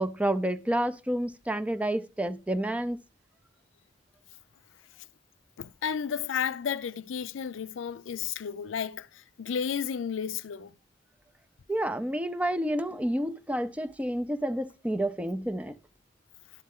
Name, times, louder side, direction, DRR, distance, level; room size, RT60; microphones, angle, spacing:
voice 1, 0.0-3.0 11.7-15.8, right 1 dB, 5° right, 0.5 m, -29 dB
voice 2, 5.6-10.7, left 7 dB, 85° left, 0.4 m, -32 dB
12.0 x 4.3 x 3.6 m
head